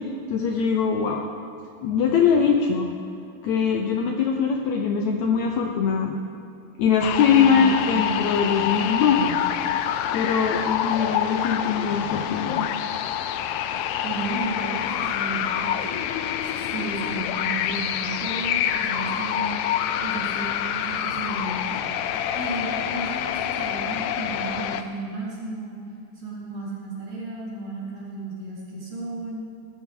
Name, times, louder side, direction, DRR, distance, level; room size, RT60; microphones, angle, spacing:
voice 1, 0.3-1.2 1.8-2.9 3.4-6.2 6.8-9.4 10.1-12.7, left 6 dB, 75° left, 2 dB, 1.8 m, -22 dB
sound 1, 7.0-24.8, left 10 dB, 90° left, 1.6 m, -27 dB
voice 2, 7.4-8.3 14.0-16.0 16.6-19.6 20.0-21.8 22.4-25.8 26.2-29.4, right 3 dB, 50° right, -8 dB, 5.4 m, -33 dB
18.0 x 13.5 x 3.7 m, 2.5 s
omnidirectional pair, 4.0 m